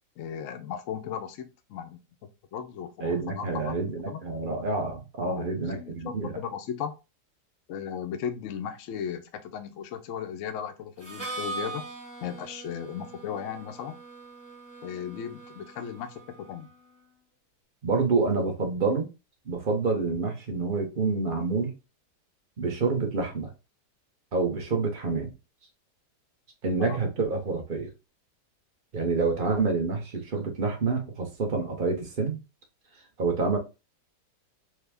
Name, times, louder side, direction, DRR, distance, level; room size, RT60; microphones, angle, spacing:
voice 1, 0.2-2.0 2.5-4.2 5.2-6.9 7.7-11.8 12.2-14.0 14.8-16.7 26.8-27.0, left 8 dB, 70° left, 0.7 m, -36 dB
voice 2, 3.0-6.3 17.8-19.1 19.5-21.7 22.6-23.5 24.3-25.3 26.6-27.9 28.9-32.4 33.2-33.6, right 4 dB, 45° right, 0.7 m, -27 dB
Harmonica, 11.0-16.7, right 3 dB, 10° right, 0.9 m, -41 dB
3.3 x 2.1 x 3.4 m
omnidirectional pair, 1.8 m